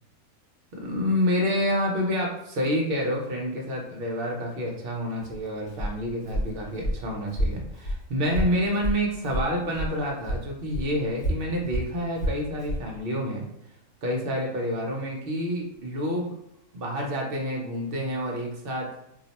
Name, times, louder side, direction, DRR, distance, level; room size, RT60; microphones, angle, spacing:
voice 1, 0.8-13.4 14.0-16.3 16.7-18.9, equal, 55° right, -1 dB, 0.6 m, -28 dB
Walk footsteps, 5.2-10.0 10.2-12.9, equal, 55° left, 1.0 m, -30 dB
2.7 x 2.0 x 4.0 m, 0.80 s
omnidirectional pair, 1.6 m